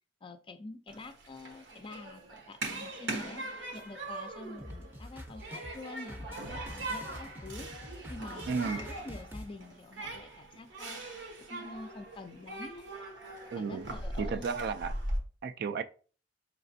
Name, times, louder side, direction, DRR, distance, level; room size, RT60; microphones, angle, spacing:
voice 1, 0.2-3.4 3.7-11.0 11.4-12.9 13.6-14.7, left 2 dB, 30° left, 0.4 m, -47 dB
Human group actions, 0.9-15.2, right 2 dB, 85° right, 1.0 m, -41 dB
sound 1, 4.6-9.5, left 1 dB, 10° right, 0.6 m, -45 dB
voice 2, 8.5-8.8 13.5-13.9 14.2-15.0 15.4-15.8, right 5 dB, 55° right, 0.3 m, -33 dB
5.0 x 3.2 x 2.6 m
head